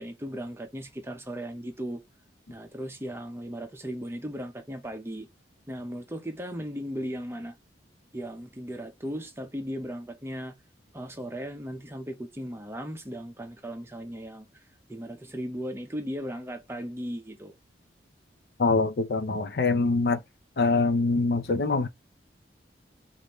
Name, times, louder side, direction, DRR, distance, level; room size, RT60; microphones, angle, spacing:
voice 1, 0.0-2.0 2.5-5.3 5.7-7.6 8.1-10.5 10.9-14.5 14.9-17.5, equal, 15° right, 0.7 m, -37 dB
voice 2, 18.6-20.2 20.6-21.9, left 3 dB, 60° left, 0.5 m, -24 dB
5.0 x 2.6 x 3.0 m
head